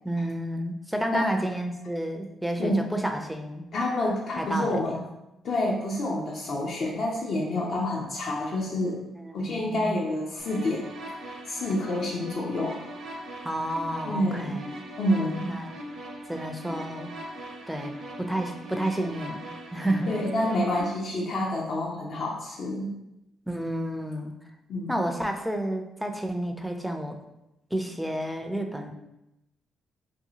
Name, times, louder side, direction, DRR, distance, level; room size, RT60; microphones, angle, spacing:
voice 1, 0.0-3.6 4.4-5.0 9.2-9.3 9.5-9.9 13.4-14.7 15.4-15.7 16.3-17.1 17.7-17.9 18.2-19.4 19.7-20.1 23.5-24.3 24.9-27.2 27.7-28.9, right 1 dB, ahead, 4 dB, 0.3 m, -30 dB
voice 2, 3.7-5.0 5.4-9.1 9.3-10.9 11.5-12.9 14.1-14.6 15.0-15.5 20.1-22.9 24.7-24.9, left 1 dB, 60° left, -2 dB, 0.4 m, -28 dB
sound 1, 10.4-20.8, right 1 dB, 70° right, 0.6 m, -40 dB
2.7 x 2.3 x 2.7 m, 0.90 s
cardioid pair, 90°, 0 cm